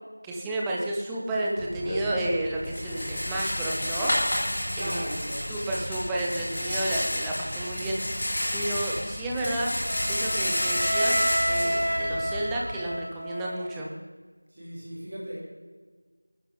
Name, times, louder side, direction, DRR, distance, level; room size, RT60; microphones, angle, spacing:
voice 1, 0.2-4.1 4.8-5.1 5.5-8.2 8.5-9.7 10.1-11.2 11.5-13.9, right 1 dB, 5° right, -4 dB, 0.6 m, -31 dB
Rattle, 1.6-12.6, left 1 dB, 25° left, 2.2 m, -30 dB
voice 2, 4.7-5.6 14.5-15.4, equal, 20° right, -7 dB, 3.6 m, -37 dB
Wind instrument woodwind instrument, 9.9-13.9, equal, 90° right, 1.0 m, -30 dB
20.0 x 10.0 x 3.8 m, 1.5 s
figure-of-eight pair, 175°, 0 cm